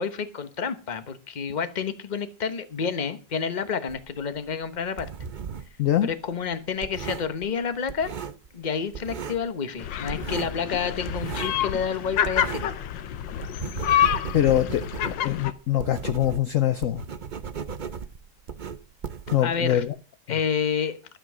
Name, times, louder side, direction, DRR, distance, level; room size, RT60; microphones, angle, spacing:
voice 1, 0.0-5.1 6.0-8.1 8.5-12.7 19.4-19.8 20.3-21.0, left 6 dB, 30° left, 10 dB, 1.0 m, -29 dB
sound 1, 3.9-5.8 6.1-8.7 8.9-9.5 9.8-12.8 13.2-19.9, right 6 dB, 85° right, 0.4 m, -36 dB
sound 2, 9.8-15.5, left 10 dB, 85° left, 1.6 m, -27 dB
voice 2, 14.3-17.0 19.3-19.9, left 12 dB, 60° left, 10 dB, 0.9 m, -23 dB
12.5 x 7.7 x 6.2 m, 0.36 s
omnidirectional pair, 2.0 m